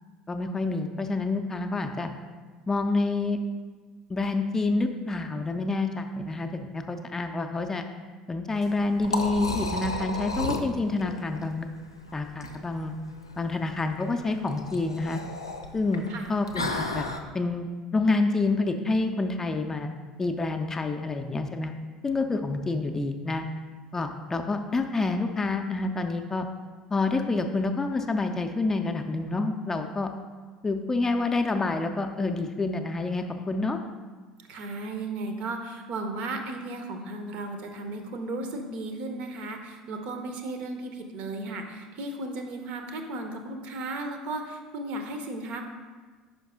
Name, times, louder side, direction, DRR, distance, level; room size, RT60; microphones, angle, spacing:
voice 1, 0.3-2.1 2.7-3.4 4.1-7.8 8.3-11.7 12.1-13.0 13.4-15.2 15.7-17.1 17.3-19.9 20.2-21.7 22.0-23.5 23.9-26.5 26.9-30.1 30.6-33.8, left 3 dB, 20° left, 5 dB, 0.4 m, -28 dB
Liquid, 8.5-17.2, left 2 dB, 85° left, 0.4 m, -34 dB
voice 2, 34.4-45.6, right 2 dB, 50° right, 5 dB, 0.7 m, -35 dB
5.3 x 5.1 x 3.6 m, 1.4 s
figure-of-eight pair, 65°, 2 cm